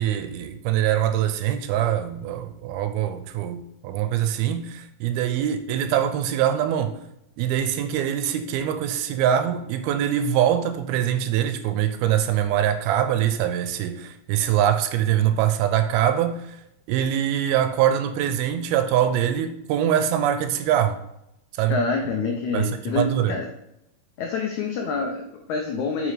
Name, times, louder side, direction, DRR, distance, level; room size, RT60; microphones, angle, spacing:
voice 1, 0.0-7.0 7.4-16.6 16.9-21.0 21.6-21.8 22.5-23.4, right 10 dB, 80° right, 2.4 m, -23 dB
voice 2, 21.7-23.5 24.2-26.1, left 4 dB, 80° left, 1.7 m, -27 dB
8.1 x 5.5 x 4.9 m
omnidirectional pair, 4.6 m